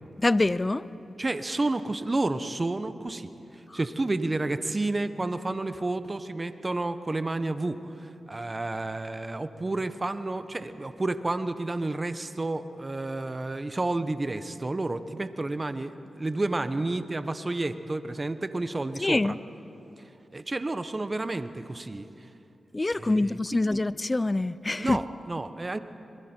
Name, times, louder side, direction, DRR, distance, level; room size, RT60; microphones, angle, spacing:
voice 1, 0.2-0.9 3.7-3.8 19.0-19.4 22.7-25.0, left 2 dB, 30° left, 17 dB, 0.6 m, -25 dB
voice 2, 1.2-19.4 20.3-22.3 23.0-23.8 24.8-25.8, right 2 dB, 35° right, 11 dB, 1.1 m, -31 dB
26.0 x 22.0 x 4.5 m, 2.9 s
cardioid pair, 45°, 0 cm